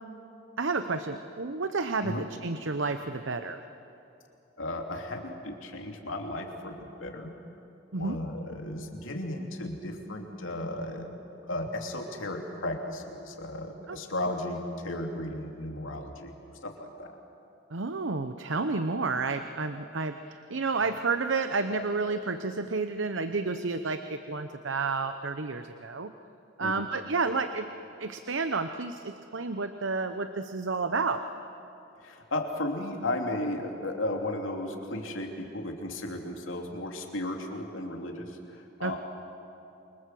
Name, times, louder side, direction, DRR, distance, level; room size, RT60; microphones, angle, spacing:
voice 1, 0.6-3.6 7.9-8.2 13.9-14.0 17.7-26.1 26.6-27.7 28.0-31.2 38.8-38.9, right 4 dB, 70° right, 9 dB, 0.9 m, -30 dB
voice 2, 4.6-7.3 8.0-11.1 11.4-16.3 16.6-17.1 26.6-26.9 32.0-39.0, left 1 dB, 85° left, 2 dB, 3.1 m, -35 dB
28.5 x 24.5 x 7.7 m, 2.9 s
head